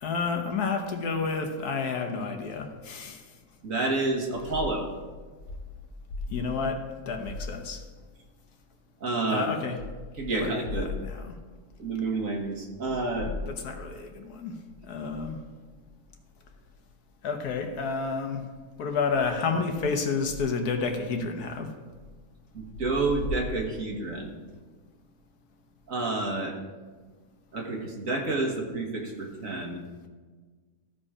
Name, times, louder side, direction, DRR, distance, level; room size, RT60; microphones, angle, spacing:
voice 1, 0.0-3.2 6.3-7.8 9.3-9.8 10.4-11.4 13.3-14.6 14.9-15.4 17.2-18.4 18.8-21.7, left 4 dB, 70° left, 4 dB, 1.5 m, -30 dB
voice 2, 3.6-4.9 9.0-9.5 10.2-10.9 11.8-13.3 22.5-24.3 25.9-26.5 27.5-29.8, right 3 dB, 55° right, 1 dB, 1.8 m, -29 dB
14.5 x 5.1 x 4.9 m, 1.4 s
omnidirectional pair, 1.7 m